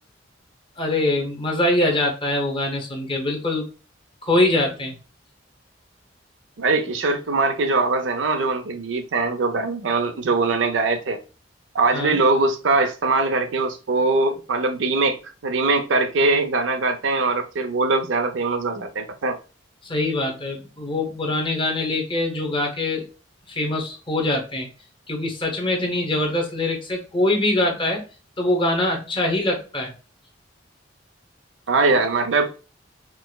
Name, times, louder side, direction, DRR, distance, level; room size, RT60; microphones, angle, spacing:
voice 1, 0.8-3.7 4.2-4.9 11.9-12.2 19.8-23.1 23.5-24.7 25.1-28.0 28.4-29.9, left 1 dB, 25° left, 0.9 m, -23 dB
voice 2, 6.6-11.2 11.7-15.2 15.4-19.4 31.7-32.5, right 3 dB, 80° right, 0.6 m, -21 dB
4.6 x 2.0 x 2.3 m
head